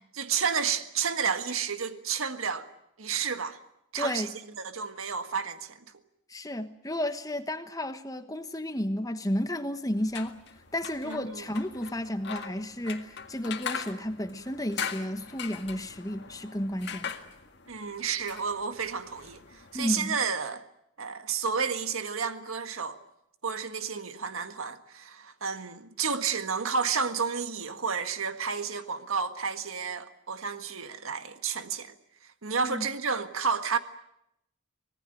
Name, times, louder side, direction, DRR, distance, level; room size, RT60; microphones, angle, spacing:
voice 1, 0.1-2.7 3.0-3.6 3.9-4.3 4.6-5.8 11.0-11.5 17.7-20.6 21.0-23.0 23.4-31.9 32.4-33.8, right 6 dB, 85° right, 1.7 m, -31 dB
voice 2, 4.0-4.3 6.3-10.4 10.7-17.1 19.7-20.2 32.6-32.9, left 1 dB, 15° left, 1.2 m, -32 dB
sound 1, 10.0-20.0, left 6 dB, 55° left, 1.9 m, -41 dB
25.5 x 18.5 x 9.2 m
head